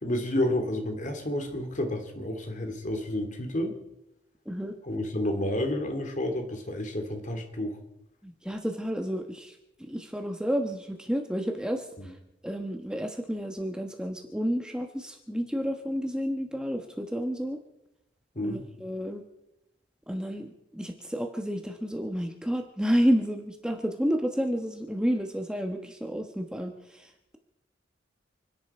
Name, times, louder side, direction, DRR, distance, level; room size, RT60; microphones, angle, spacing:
voice 1, 0.0-3.7 4.8-7.8 12.0-12.1 18.3-18.6, left 1 dB, 45° left, 5 dB, 2.6 m, -30 dB
voice 2, 4.5-4.8 8.2-9.5 9.8-11.8 12.4-17.6 18.4-19.2 20.1-27.1, equal, 5° right, 3 dB, 1.2 m, -30 dB
29.5 x 10.5 x 4.4 m, 0.89 s
head